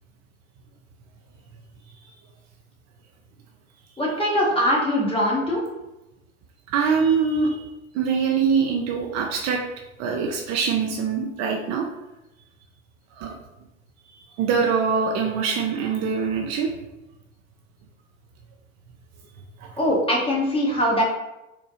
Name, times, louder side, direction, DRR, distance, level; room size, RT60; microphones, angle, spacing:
voice 1, 4.0-5.6 19.8-21.0, equal, 15° left, -3 dB, 1.1 m, -22 dB
voice 2, 6.7-7.6 7.9-9.6 10.0-11.9 13.2-13.3 14.4-16.7 19.6-19.7, right 5 dB, 45° right, 1 dB, 0.5 m, -23 dB
4.2 x 2.1 x 3.0 m, 0.95 s
hypercardioid pair, 75°, 38 cm